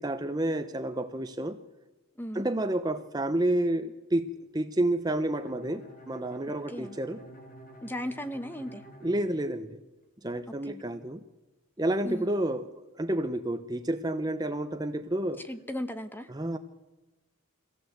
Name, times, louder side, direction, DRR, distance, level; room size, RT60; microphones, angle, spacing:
voice 1, 0.0-1.6 2.3-4.3 4.5-7.2 9.0-9.8 10.2-11.2 11.8-15.4 16.3-16.6, right 1 dB, 20° right, 8 dB, 0.7 m, -30 dB
Bowed string instrument, 5.3-10.1, right 1 dB, 40° left, 2.4 m, -50 dB
voice 2, 7.8-8.8 10.7-10.8 12.0-12.3 15.5-16.3, equal, 10° left, 10 dB, 0.9 m, -36 dB
23.5 x 16.0 x 7.9 m, 1.1 s
head